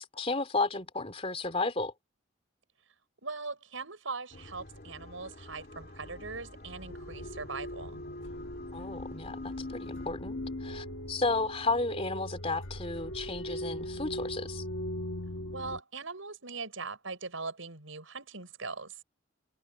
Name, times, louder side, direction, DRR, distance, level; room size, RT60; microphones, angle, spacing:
voice 1, 0.0-1.9 8.7-14.6, left 3 dB, 30° left, 3.3 m, -33 dB
voice 2, 3.2-8.0 15.5-19.0, right 4 dB, 90° right, 6.2 m, -40 dB
sound 1, 4.3-10.1, left 1 dB, 50° left, 2.5 m, -49 dB
sound 2, 6.9-15.8, left 1 dB, 70° left, 1.3 m, -39 dB
head